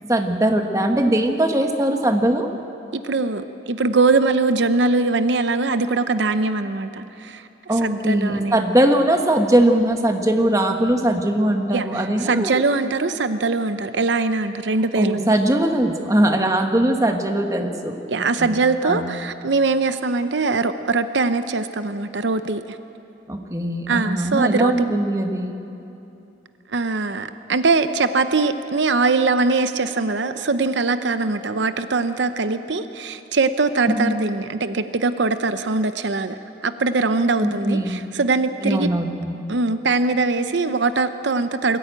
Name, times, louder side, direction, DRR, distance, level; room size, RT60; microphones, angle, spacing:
voice 1, 0.0-2.5 7.7-12.5 14.9-18.6 18.8-19.1 23.3-25.6 33.9-34.2 37.4-38.0 38.6-39.4, right 1 dB, 15° right, 4 dB, 1.2 m, -20 dB
voice 2, 2.9-7.5 7.8-8.6 11.7-15.3 18.1-22.8 23.9-24.9 26.7-38.9 39.5-41.8, right 3 dB, 75° right, 10 dB, 0.7 m, -22 dB
22.5 x 14.0 x 9.0 m, 2.8 s
head